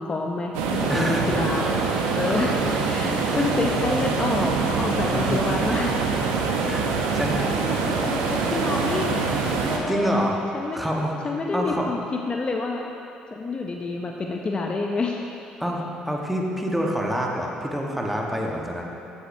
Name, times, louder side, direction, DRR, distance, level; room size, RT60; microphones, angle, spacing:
voice 1, 0.0-1.7 2.2-6.0 6.9-9.3 9.6-10.3 10.5-10.9 11.2-12.0 12.3-12.9 13.3-15.2, left 3 dB, 35° left, 1 dB, 0.5 m, -28 dB
sound 1, 0.5-9.8, right 4 dB, 85° right, 0.6 m, -24 dB
voice 2, 0.9-1.6 2.2-3.1 3.3-3.5 5.1-5.6 6.6-6.9 7.1-7.8 9.9-10.5 10.7-11.1 11.5-11.9 15.6-18.9, equal, ahead, -1 dB, 1.1 m, -27 dB
8.3 x 7.8 x 2.6 m, 2.7 s
supercardioid pair, 70°, 3 cm